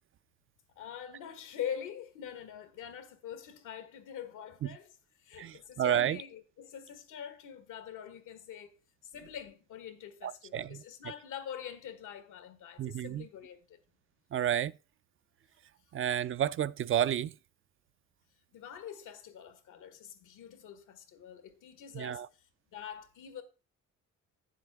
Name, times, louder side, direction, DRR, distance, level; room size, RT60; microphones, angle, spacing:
voice 1, 0.7-8.7 9.0-13.8 18.5-23.4, left 9 dB, 85° left, 1.5 m, -44 dB
voice 2, 5.4-6.2 10.2-10.8 12.8-13.3 14.3-14.7 15.9-17.3 21.9-22.3, right 10 dB, 45° right, 0.4 m, -31 dB
9.1 x 7.4 x 3.5 m
cardioid pair, 90°, 30 cm